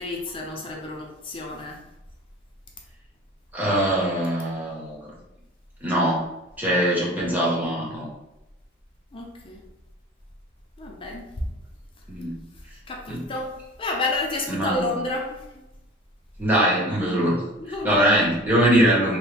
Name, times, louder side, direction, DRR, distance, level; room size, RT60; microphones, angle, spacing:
voice 1, 0.0-1.8 9.1-9.6 10.8-11.5 12.9-15.6 17.6-17.9, left 2 dB, 30° left, 0 dB, 0.5 m, -30 dB
voice 2, 3.5-5.1 5.8-6.3 6.6-8.1 12.1-12.4 13.1-13.2 14.5-14.9 16.4-17.4 17.8-19.2, right 1 dB, 10° right, -6 dB, 0.9 m, -22 dB
3.1 x 2.1 x 3.2 m, 0.94 s
head